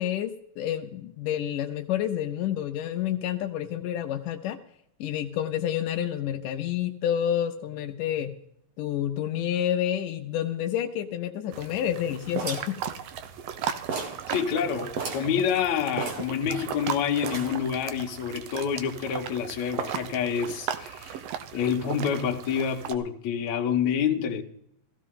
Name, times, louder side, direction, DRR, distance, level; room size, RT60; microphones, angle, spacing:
voice 1, 0.0-4.6 5.0-8.4 8.8-12.8, left 10 dB, 80° left, 2.2 m, -29 dB
sound 1, 11.5-22.9, right 8 dB, 75° right, 1.4 m, -37 dB
sound 2, 12.4-13.6 13.9-14.3 14.6-14.7 14.9-15.3 16.0-16.8 17.2-17.7, right 4 dB, 55° right, 2.5 m, -34 dB
voice 2, 14.3-21.2 21.5-24.4, left 7 dB, 60° left, 2.4 m, -27 dB
16.5 x 15.0 x 3.8 m
omnidirectional pair, 3.9 m